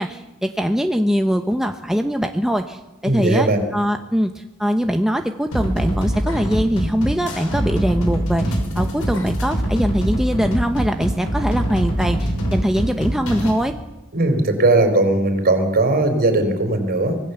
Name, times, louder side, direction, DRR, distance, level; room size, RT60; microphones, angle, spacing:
voice 1, 0.0-13.7, equal, ahead, 5 dB, 0.9 m, -22 dB
voice 2, 3.0-3.6 14.1-17.2, right 2 dB, 45° right, 7 dB, 4.0 m, -18 dB
sound 1, 5.5-13.5, equal, 70° left, 5.9 m, -23 dB
25.0 x 18.5 x 7.1 m, 1.1 s
head